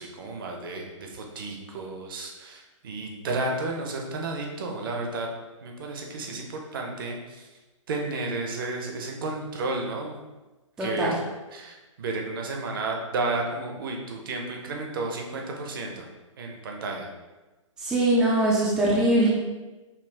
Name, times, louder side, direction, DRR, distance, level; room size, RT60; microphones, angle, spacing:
voice 1, 0.0-5.3 5.6-7.5 7.9-10.2 10.8-11.2 11.5-16.1 16.4-17.1, right 2 dB, 40° right, 1 dB, 0.8 m, -32 dB
voice 2, 10.8-11.1 17.8-19.3, right 1 dB, 5° right, -6 dB, 0.4 m, -22 dB
5.6 x 2.3 x 3.4 m, 1.2 s
figure-of-eight pair, 130°, 17 cm